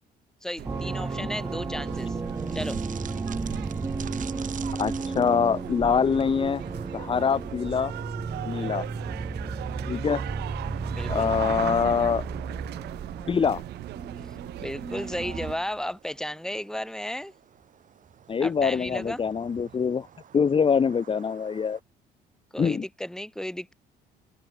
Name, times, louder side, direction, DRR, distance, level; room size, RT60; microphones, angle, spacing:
voice 1, 0.4-2.2 2.5-2.8 10.9-11.3 14.6-17.3 18.4-19.2 22.5-23.7, left 1 dB, 5° left, 7.2 m, -34 dB
sound 1, 0.6-15.7, right 3 dB, 20° right, 3.7 m, -34 dB
sound 2, 0.6-15.6, right 16 dB, 80° right, 3.0 m, -38 dB
sound 3, 1.9-21.8, right 9 dB, 50° right, 7.0 m, -49 dB
voice 2, 4.8-6.6 6.9-7.9 8.4-8.9 9.9-10.2 11.1-12.2 13.3-13.6 18.3-20.1 20.3-21.8 22.6-22.8, left 6 dB, 30° left, 1.5 m, -24 dB
open air
cardioid pair, 110°, 17 cm